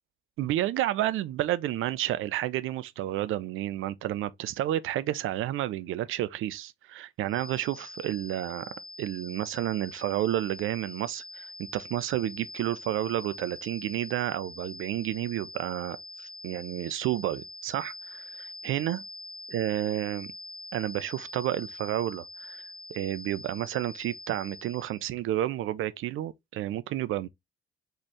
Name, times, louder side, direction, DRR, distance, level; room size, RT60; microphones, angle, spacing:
voice 1, 0.4-19.0 19.5-20.3 20.7-22.6 22.9-27.3, right 13 dB, 40° right, 0.5 m, -31 dB
sound 1, 7.3-25.0, left 1 dB, 75° right, 1.0 m, -44 dB
4.1 x 2.9 x 3.5 m
figure-of-eight pair, 45°, 31 cm